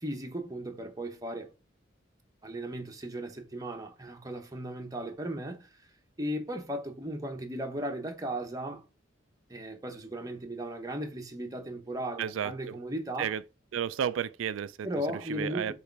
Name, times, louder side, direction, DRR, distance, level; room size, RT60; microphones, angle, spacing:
voice 1, 0.0-1.5 2.4-5.7 6.2-8.8 9.5-13.3 14.8-15.7, right 1 dB, 20° right, 1.0 m, -36 dB
voice 2, 12.2-12.8 13.2-13.4 13.7-15.7, right 8 dB, 90° right, 0.3 m, -33 dB
6.6 x 3.2 x 4.6 m
head